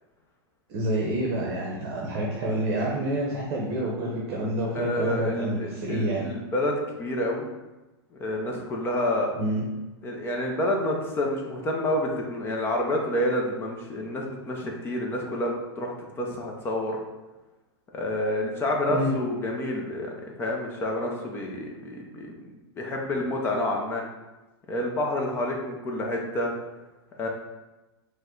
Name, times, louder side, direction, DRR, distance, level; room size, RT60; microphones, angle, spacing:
voice 1, 0.7-6.2 9.4-9.7 18.9-19.1, right 1 dB, 40° right, -3 dB, 0.9 m, -28 dB
voice 2, 4.7-7.5 8.1-9.3 10.0-17.0 17.9-20.1 20.4-24.0 24.7-26.5 27.2-27.3, left 1 dB, 15° left, 0 dB, 0.6 m, -28 dB
5.1 x 2.2 x 3.8 m, 1.1 s
supercardioid pair, 155°, 14 cm